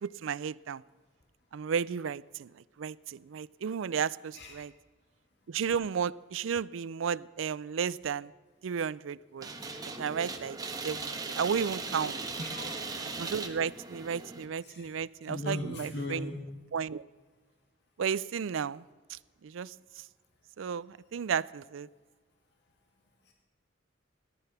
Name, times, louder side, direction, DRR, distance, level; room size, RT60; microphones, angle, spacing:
voice 1, 0.0-0.8 1.5-2.5 2.8-4.7 5.5-8.3 8.6-9.5 10.0-10.6 10.8-12.2 13.2-16.3 16.7-17.0 18.0-18.8 19.1-19.7 20.6-21.9, right 7 dB, 85° right, 21 dB, 0.4 m, -33 dB
sound 1, 9.4-14.4, right 3 dB, 20° right, 1.3 m, -38 dB
voice 2, 12.4-12.8 14.6-14.9 15.3-16.4, left 1 dB, 60° left, 1 dB, 2.2 m, -38 dB
18.0 x 11.5 x 5.7 m, 1.4 s
head